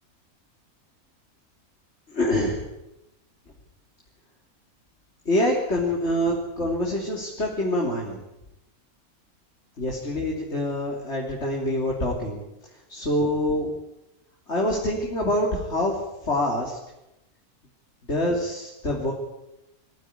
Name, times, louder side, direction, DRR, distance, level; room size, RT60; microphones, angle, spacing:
voice 1, 2.1-2.7 5.3-8.2 9.8-12.4 12.9-13.7 14.5-16.8 18.1-19.1, left 1 dB, 50° left, -1 dB, 3.5 m, -25 dB
23.5 x 15.0 x 9.9 m, 0.93 s
omnidirectional pair, 1.5 m